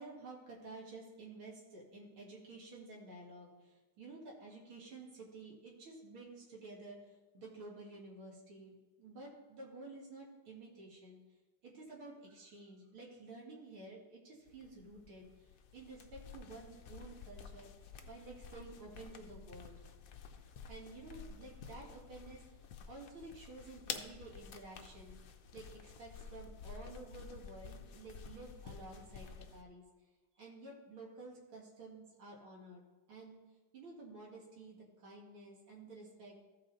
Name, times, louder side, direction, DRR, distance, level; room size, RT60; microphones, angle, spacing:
voice 1, 0.0-11.2 11.6-17.7 18.1-19.8 20.7-22.4 22.9-25.2 25.5-29.8 30.4-33.4 33.7-36.3, right 2 dB, 80° right, -2 dB, 2.7 m, -52 dB
sound 1, 14.5-29.6, left 6 dB, 75° left, 0.8 m, -51 dB
14.5 x 5.7 x 4.0 m, 1.2 s
omnidirectional pair, 2.3 m